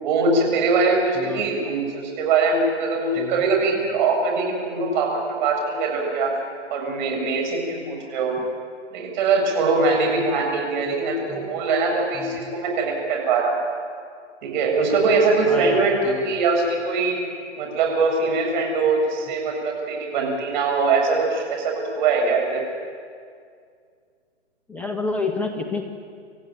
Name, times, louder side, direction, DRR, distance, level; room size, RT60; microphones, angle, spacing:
voice 1, 0.0-6.3 6.7-8.4 8.9-13.6 14.4-17.2 17.6-22.6, right 4 dB, 40° right, 0 dB, 7.7 m, -22 dB
voice 2, 1.1-1.5 3.1-3.4 10.9-11.0 11.3-11.4 12.1-12.4 15.4-16.3 24.7-25.8, left 3 dB, 5° left, 2 dB, 1.4 m, -29 dB
27.0 x 15.0 x 9.3 m, 2.2 s
figure-of-eight pair, 135°, 36 cm